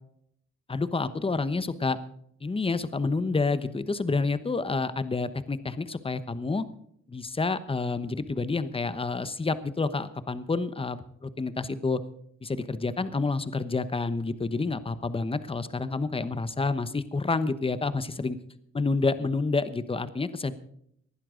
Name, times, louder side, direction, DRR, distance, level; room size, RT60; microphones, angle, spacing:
voice 1, 0.7-2.0 2.4-6.6 7.1-12.0 12.4-18.4 18.7-20.5, left 3 dB, 20° left, 13 dB, 1.0 m, -29 dB
19.0 x 12.0 x 3.8 m, 0.70 s
cardioid pair, 90°, 30 cm